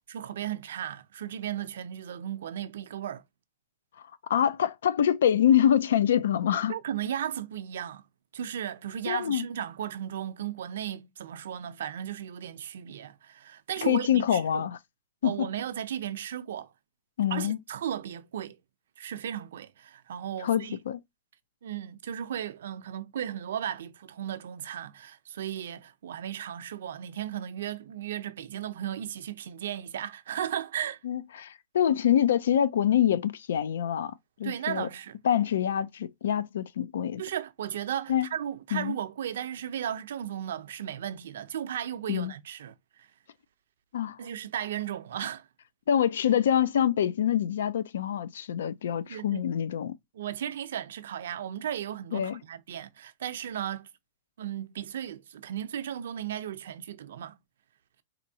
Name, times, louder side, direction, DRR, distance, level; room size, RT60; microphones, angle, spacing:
voice 1, 0.1-3.2 6.7-8.0 8.3-14.7 15.2-16.7 17.3-18.6 19.0-20.8 21.6-31.0 34.4-35.2 37.2-43.1 44.2-45.5 49.0-49.4 50.1-53.9 54.4-57.4, right 10 dB, 80° right, 0.5 m, -35 dB
voice 2, 4.3-6.7 9.1-9.4 13.8-14.8 15.2-15.5 17.2-17.6 20.4-21.0 31.0-34.1 34.4-34.9 35.2-37.2 38.1-38.3 38.7-39.0 42.1-42.3 43.9-44.2 45.9-49.9 52.1-52.4, left 9 dB, 85° left, 0.4 m, -25 dB
4.2 x 2.6 x 2.7 m
supercardioid pair, 155°, 0 cm